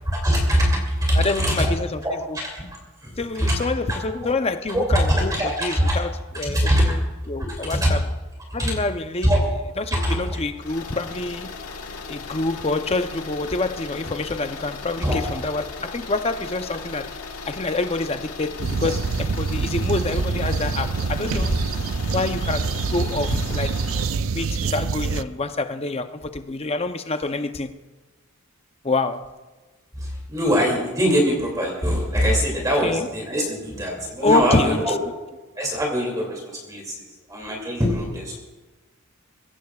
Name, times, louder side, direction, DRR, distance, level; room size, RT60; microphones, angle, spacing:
voice 1, 0.0-1.7 2.0-2.6 3.0-3.6 3.9-4.3 4.7-6.0 6.5-7.0 7.4-7.9 8.6-8.7 9.2-9.4 9.9-10.4 15.0-15.2 21.3-21.5 29.9-35.0 35.6-38.4, equal, 15° right, 2.6 m, -23 dB
voice 2, 1.1-2.0 2.3-2.4 3.2-5.3 5.6-6.1 6.4-8.0 8.5-9.3 9.8-11.5 12.1-17.1 17.5-21.5 22.1-23.8 24.3-27.7 28.8-29.3 32.8-33.1 34.2-34.8, left 3 dB, 25° left, 0.6 m, -26 dB
sound 1, 10.6-24.2, left 4 dB, 80° left, 1.4 m, -37 dB
sound 2, 18.6-25.2, right 4 dB, 65° right, 0.5 m, -25 dB
22.5 x 17.0 x 2.4 m
head